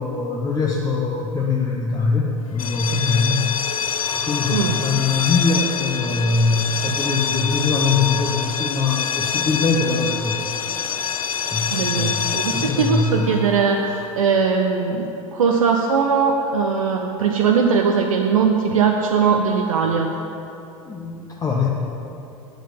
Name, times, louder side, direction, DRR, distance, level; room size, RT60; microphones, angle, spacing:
voice 1, 0.0-3.5 4.3-10.4 11.5-13.4 20.8-21.7, left 4 dB, 20° left, -2 dB, 1.0 m, -22 dB
sound 1, 2.5-14.2, left 7 dB, 85° left, 0.5 m, -26 dB
voice 2, 11.7-20.1, right 5 dB, 75° right, 2 dB, 0.7 m, -20 dB
9.1 x 7.8 x 6.9 m, 2.9 s
figure-of-eight pair, 85°, 18 cm